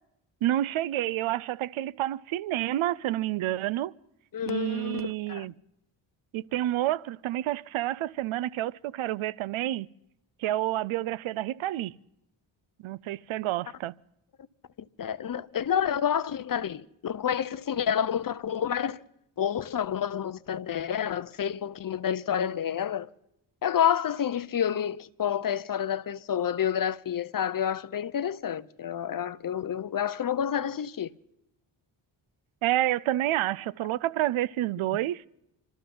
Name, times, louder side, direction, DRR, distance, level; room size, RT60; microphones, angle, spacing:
voice 1, 0.4-3.9 4.5-5.5 6.3-9.9 10.4-11.9 12.8-13.9 32.6-35.2, right 14 dB, 90° right, 0.6 m, -29 dB
voice 2, 4.3-5.5 15.0-19.0 19.4-23.1 23.6-31.1, left 9 dB, 45° left, 0.7 m, -29 dB
26.5 x 13.5 x 3.9 m
cardioid pair, 95°, 47 cm